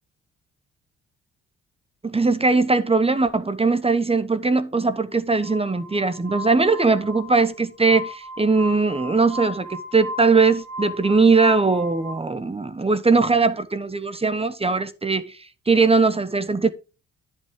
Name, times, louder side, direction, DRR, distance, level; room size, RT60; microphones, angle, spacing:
voice 1, 2.0-15.4 15.7-16.7, right 4 dB, 20° right, 1.1 m, -20 dB
Glass, 5.4-12.1, left 1 dB, 85° right, 2.3 m, -35 dB
10.5 x 5.8 x 3.6 m
supercardioid pair, 65°, 29 cm